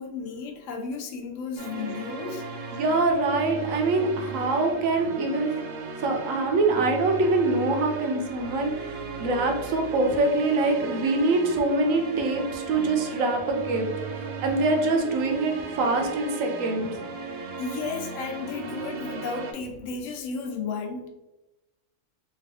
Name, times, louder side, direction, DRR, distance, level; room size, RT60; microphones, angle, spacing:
voice 1, 0.0-2.4 17.6-21.1, left 5 dB, 75° left, 2 dB, 1.0 m, -33 dB
sound 1, 1.6-19.5, right 5 dB, 70° right, 0.9 m, -36 dB
voice 2, 2.7-5.5 6.0-13.9 14.4-16.9, right 2 dB, 90° right, 3 dB, 1.1 m, -24 dB
3.4 x 2.4 x 3.3 m, 0.97 s
omnidirectional pair, 1.3 m